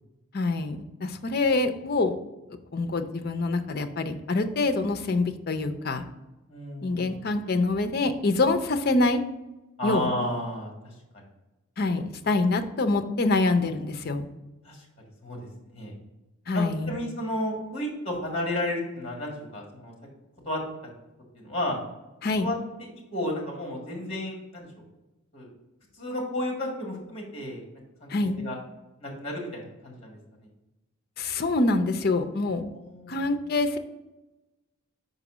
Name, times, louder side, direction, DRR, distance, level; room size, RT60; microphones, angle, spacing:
voice 1, 0.3-2.2 2.7-6.0 6.8-9.2 9.8-10.1 11.8-14.2 16.5-17.0 22.2-22.5 28.1-28.4 31.2-32.6 33.1-33.8, left 2 dB, 45° left, 8 dB, 0.5 m, -25 dB
voice 2, 6.5-7.1 9.8-10.9 14.6-14.8 15.2-15.5 15.7-15.9 16.5-19.9 20.4-20.6 21.4-21.8 22.4-22.5 23.1-24.7 25.3-25.5 26.0-27.6 28.0-28.1 28.4-28.6 29.0-30.2 32.7-33.3, left 1 dB, 30° left, 0 dB, 1.6 m, -32 dB
5.4 x 4.0 x 6.0 m, 1.0 s
head